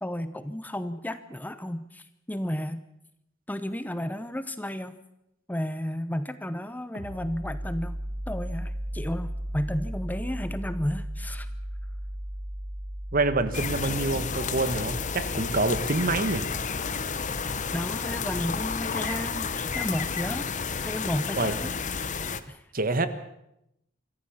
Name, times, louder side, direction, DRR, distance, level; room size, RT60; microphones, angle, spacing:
voice 1, 0.0-2.8 3.5-5.0 5.5-8.0 8.3-11.5 17.7-20.5 20.8-21.7 22.5-22.6, equal, 10° left, 12 dB, 0.8 m, -32 dB
sound 1, 6.9-18.3, equal, 65° right, 1.9 m, -37 dB
voice 2, 13.1-16.5 21.4-21.6 22.7-23.1, right 3 dB, 45° right, 12 dB, 1.4 m, -26 dB
sound 2, 13.5-22.4, left 5 dB, 40° left, 1.0 m, -31 dB
26.0 x 14.5 x 7.2 m, 0.83 s
head